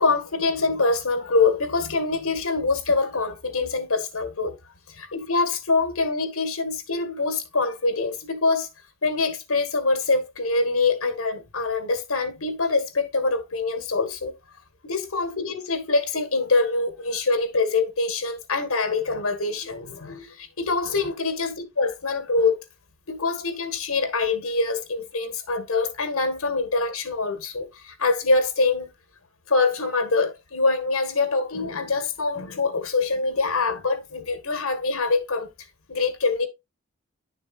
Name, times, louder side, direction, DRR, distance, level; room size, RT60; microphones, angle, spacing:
voice 1, 0.0-4.5 4.9-8.7 9.0-14.3 14.8-22.6 23.1-28.9 29.5-35.5 35.9-36.5, left 3 dB, 85° left, 1.6 m, -24 dB
10.5 x 6.6 x 2.4 m
head